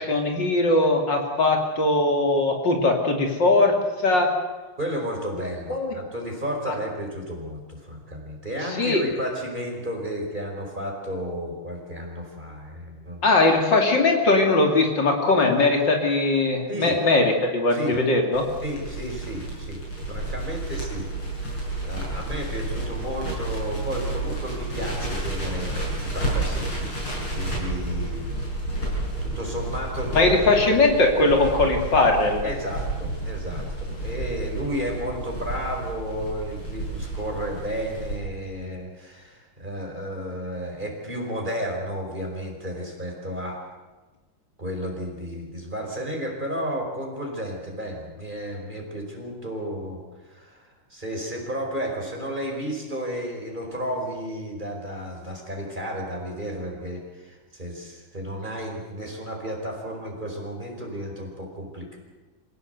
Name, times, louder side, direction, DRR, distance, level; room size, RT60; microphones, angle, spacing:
voice 1, 0.0-3.7 4.0-4.3 5.7-5.9 8.8-9.0 13.2-18.5 30.1-32.5, left 2 dB, 60° left, 2 dB, 3.4 m, -20 dB
voice 2, 4.8-13.3 16.7-17.0 17.7-18.0 18.6-19.8 20.1-21.5 21.8-28.3 29.2-30.8 32.4-43.6 44.6-62.0, equal, 20° right, 1 dB, 5.0 m, -33 dB
Crackle, 18.3-38.1, right 2 dB, 75° left, 7.8 m, -31 dB
26.5 x 17.0 x 8.1 m, 1.2 s
omnidirectional pair, 2.3 m